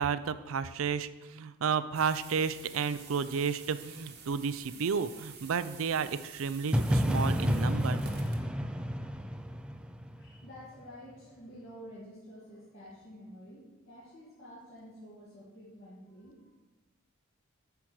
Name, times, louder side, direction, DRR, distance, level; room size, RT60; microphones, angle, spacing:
voice 1, 0.0-8.0, right 6 dB, 70° right, 14 dB, 0.4 m, -32 dB
sound 1, 1.9-8.4, right 6 dB, 50° right, 1.1 m, -50 dB
sound 2, 6.7-10.6, equal, 5° right, 0.4 m, -30 dB
voice 2, 10.1-16.5, equal, 65° left, -9 dB, 2.4 m, -50 dB
8.4 x 4.6 x 6.1 m, 1.1 s
head